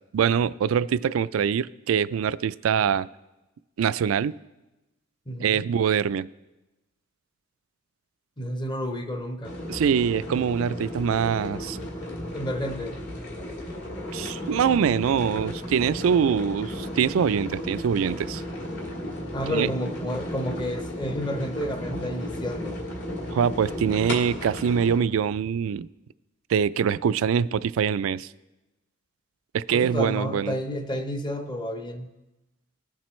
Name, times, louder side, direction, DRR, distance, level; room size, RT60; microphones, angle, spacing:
voice 1, 0.1-3.1 3.8-4.3 5.4-6.3 9.7-11.8 14.1-18.4 19.5-19.7 23.3-25.9 26.5-28.3 29.5-30.6, right 7 dB, 80° right, 0.3 m, -24 dB
voice 2, 5.3-5.6 8.4-9.5 12.3-13.0 19.3-22.8 29.7-32.1, equal, 20° left, 0.8 m, -30 dB
sound 1, 9.4-25.0, left 1 dB, 55° left, 2.2 m, -34 dB
20.0 x 7.4 x 3.1 m
head